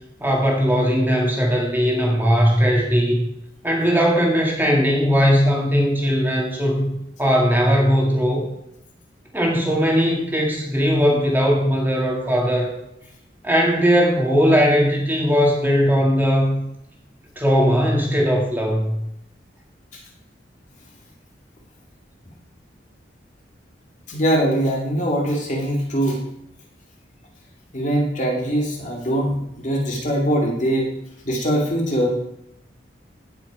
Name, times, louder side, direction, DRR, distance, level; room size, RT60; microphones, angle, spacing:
voice 1, 0.2-3.3 3.6-6.9 7.2-8.5 9.3-12.7 13.4-16.6 17.4-18.9, equal, 10° right, -1 dB, 2.1 m, -19 dB
voice 2, 24.1-26.2 27.7-30.9 31.2-32.1, right 1 dB, 40° left, -1 dB, 2.4 m, -22 dB
16.0 x 5.9 x 4.9 m, 0.79 s
head